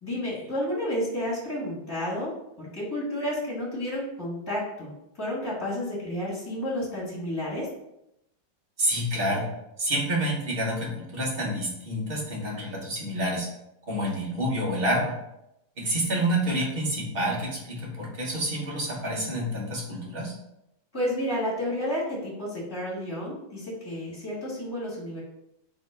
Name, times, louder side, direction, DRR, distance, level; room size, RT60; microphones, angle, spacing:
voice 1, 0.0-2.3 2.6-4.9 5.2-7.7 20.9-25.2, left 1 dB, 15° left, -7 dB, 1.3 m, -31 dB
voice 2, 8.8-9.5 9.8-13.5 13.8-15.2 15.8-20.3, right 1 dB, 45° right, -3 dB, 0.8 m, -28 dB
2.8 x 2.8 x 4.4 m, 0.85 s
omnidirectional pair, 2.0 m